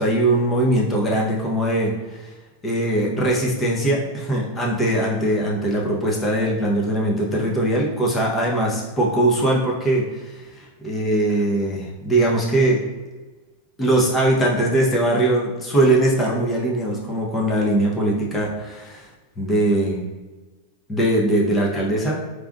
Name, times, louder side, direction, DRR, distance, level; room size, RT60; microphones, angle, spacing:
voice 1, 0.0-2.3 2.6-12.8 13.8-19.1 19.4-20.0 20.9-22.2, right 1 dB, 15° left, -3 dB, 1.1 m, -21 dB
4.9 x 3.5 x 2.6 m, 1.3 s
figure-of-eight pair, 90°, 0 cm